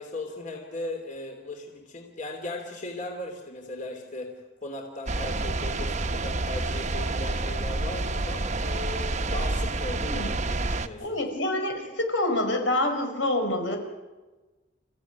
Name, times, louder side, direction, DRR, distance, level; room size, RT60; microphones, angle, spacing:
voice 1, 0.0-4.3 4.6-11.1, left 2 dB, 40° left, 3 dB, 3.0 m, -37 dB
sound 1, 5.1-10.9, right 2 dB, 40° right, 1.0 m, -28 dB
voice 2, 10.0-10.3 11.0-13.8, left 1 dB, 80° left, 4 dB, 5.1 m, -27 dB
29.0 x 15.5 x 9.5 m, 1.2 s
head